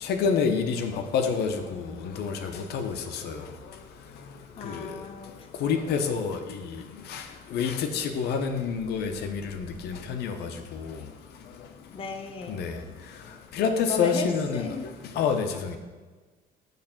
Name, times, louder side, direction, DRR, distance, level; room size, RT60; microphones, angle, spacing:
voice 1, 0.0-3.4 4.6-4.9 5.6-6.7 7.1-7.2 7.5-11.0 12.5-12.8 13.5-14.7 15.2-15.8, left 6 dB, 75° left, 5 dB, 0.7 m, -28 dB
voice 2, 4.6-5.5 11.9-12.5 13.9-14.3 14.5-14.8, left 5 dB, 35° left, 4 dB, 0.6 m, -35 dB
6.6 x 3.2 x 5.8 m, 1.4 s
cardioid pair, 110°, 17 cm